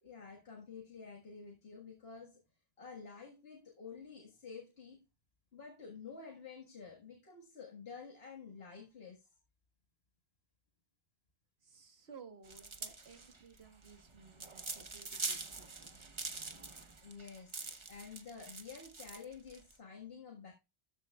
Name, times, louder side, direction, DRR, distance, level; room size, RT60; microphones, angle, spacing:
voice 1, 0.0-2.4 2.8-5.0 5.5-9.4 17.0-20.5, left 5 dB, 65° left, 2.0 m, -50 dB
voice 2, 11.6-15.9, right 5 dB, 70° right, 1.7 m, -57 dB
sound 1, 12.5-19.7, right 3 dB, 30° right, 0.9 m, -44 dB
13.0 x 7.9 x 2.4 m
omnidirectional pair, 1.1 m